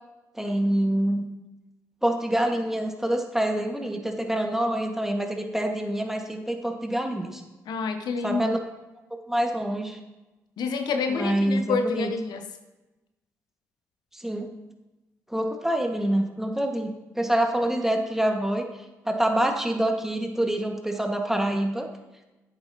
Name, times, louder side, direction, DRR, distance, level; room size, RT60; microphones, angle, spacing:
voice 1, 0.4-1.3 2.0-7.4 8.2-8.6 9.3-10.0 11.1-12.1 14.1-14.5 15.3-18.7 19.1-21.9, right 1 dB, 5° right, 3 dB, 1.7 m, -26 dB
voice 2, 7.7-8.5 10.6-12.5, left 4 dB, 65° left, 7 dB, 0.7 m, -28 dB
11.0 x 8.8 x 2.9 m, 1.1 s
hypercardioid pair, 45°, 8 cm